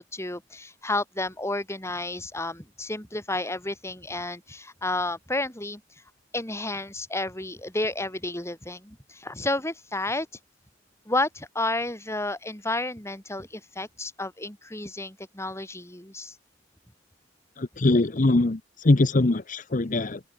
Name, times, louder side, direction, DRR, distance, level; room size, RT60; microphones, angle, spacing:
voice 1, 0.0-5.8 6.3-10.3 11.1-16.4, left 2 dB, 15° left, 5.3 m, -31 dB
voice 2, 17.6-18.6 18.8-20.2, left 2 dB, 45° left, 0.8 m, -22 dB
open air
head